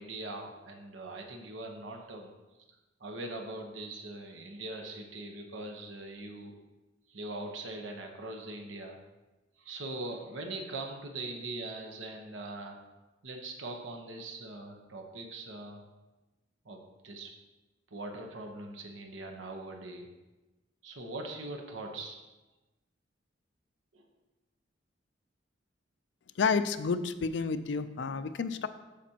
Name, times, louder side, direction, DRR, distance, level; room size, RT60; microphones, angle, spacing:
voice 1, 0.0-2.3 3.0-6.5 7.1-9.0 9.6-12.8 13.2-15.8 16.6-17.3 17.9-20.1 20.8-22.2 23.9-24.1, right 2 dB, 85° right, 2 dB, 1.0 m, -41 dB
voice 2, 26.4-28.7, left 5 dB, 65° left, 11 dB, 0.4 m, -30 dB
13.0 x 5.1 x 2.9 m, 1.1 s
head